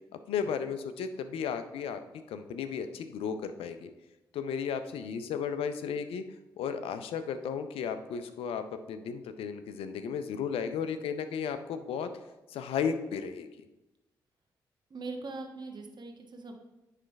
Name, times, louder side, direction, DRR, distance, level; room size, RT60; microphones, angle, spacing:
voice 1, 0.3-2.0 2.3-3.9 4.3-6.2 6.6-12.1 12.5-13.7, left 7 dB, 75° left, 10 dB, 0.6 m, -34 dB
voice 2, 14.9-16.5, right 3 dB, 50° right, 3 dB, 1.2 m, -41 dB
9.9 x 3.3 x 4.6 m, 1.0 s
hypercardioid pair, 40°, 10 cm